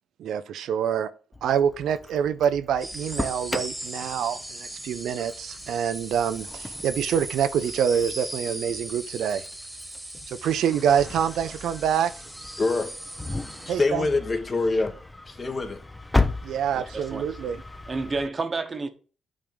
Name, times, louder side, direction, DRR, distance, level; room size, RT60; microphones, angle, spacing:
voice 1, 0.2-1.1 1.4-9.4 10.3-12.1 13.7-14.1 16.4-17.6, right 8 dB, 75° right, 0.5 m, -26 dB
Engine starting, 1.3-18.3, left 2 dB, 10° left, 0.7 m, -35 dB
sound 1, 2.8-13.7, right 1 dB, 10° right, 1.5 m, -39 dB
voice 2, 12.6-12.9 13.7-14.9 15.3-15.8, left 3 dB, 30° left, 1.4 m, -25 dB
voice 3, 16.7-17.4 17.9-18.9, right 3 dB, 30° right, 1.1 m, -30 dB
8.7 x 3.6 x 5.2 m
cardioid pair, 90°, 0 cm